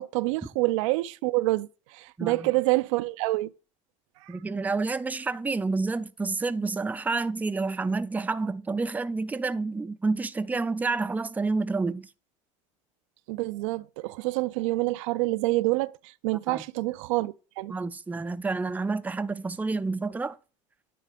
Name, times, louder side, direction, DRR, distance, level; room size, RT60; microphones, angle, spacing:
voice 1, 0.0-3.5 4.2-4.4 13.3-17.7, right 20 dB, 80° right, 0.4 m, -27 dB
voice 2, 4.3-12.1 16.5-16.6 17.7-20.4, right 3 dB, 10° right, 0.4 m, -29 dB
10.0 x 4.0 x 5.0 m
supercardioid pair, 95°, 16 cm